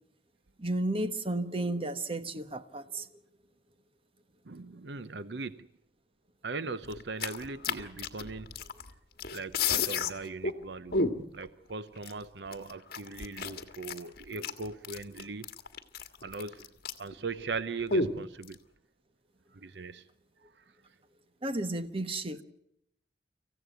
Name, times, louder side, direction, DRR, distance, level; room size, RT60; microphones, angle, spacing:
voice 1, 0.6-3.1 21.4-22.4, right 1 dB, 30° right, 1.3 m, -33 dB
voice 2, 4.4-5.7 6.4-8.5 9.3-11.1 11.3-15.5 16.2-16.6 17.0-18.6 19.5-20.1 20.4-20.6, right 3 dB, 65° right, 0.8 m, -39 dB
sound 1, 6.9-8.9 9.2-10.1 10.4-10.5 10.9-11.4 12.0-12.1 12.5-17.1 17.4-17.5 17.9-18.5, left 4 dB, 55° left, 1.7 m, -31 dB
26.0 x 15.5 x 9.2 m
head